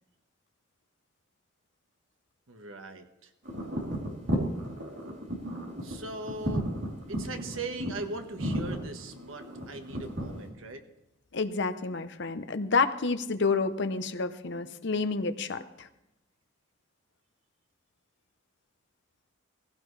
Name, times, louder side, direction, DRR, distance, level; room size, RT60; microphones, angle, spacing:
voice 1, 2.5-3.3 5.8-6.7 7.1-10.8, right 2 dB, 80° right, 6 dB, 1.4 m, -40 dB
sound 1, 3.4-10.5, equal, 60° right, 3.2 m, -34 dB
voice 2, 11.3-15.9, left 4 dB, 60° left, 10 dB, 0.8 m, -29 dB
17.0 x 16.0 x 3.3 m, 0.91 s
head